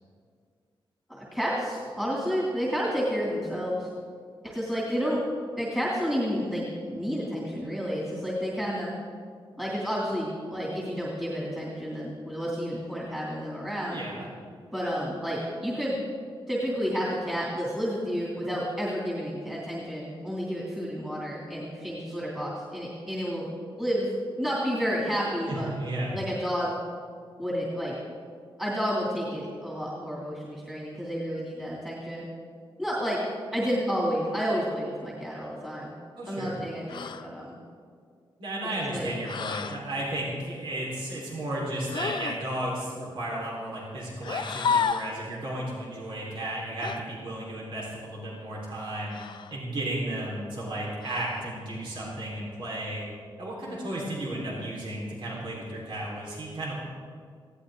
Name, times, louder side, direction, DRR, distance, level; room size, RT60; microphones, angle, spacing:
voice 1, 1.1-3.9 4.4-5.3 5.6-6.6 6.9-8.9 9.6-14.0 14.7-16.0 16.5-24.1 24.4-25.7 26.1-26.8 27.4-28.0 28.6-32.3 32.8-33.2 33.5-35.9 36.2-37.6 38.7-39.1, equal, 5° right, -5 dB, 2.8 m, -30 dB
voice 2, 13.9-14.3 25.5-26.1 36.2-36.6 38.4-49.2 49.5-53.0 53.4-56.7, right 1 dB, 65° right, -5 dB, 4.4 m, -34 dB
sound 1, 36.9-37.3 39.3-39.8 41.9-42.4 44.2-45.2 46.8-47.0 49.1-49.6 51.0-51.5, left 6 dB, 60° left, 0.5 m, -31 dB
19.0 x 16.5 x 3.9 m, 2.1 s
wide cardioid pair, 150°, 9 cm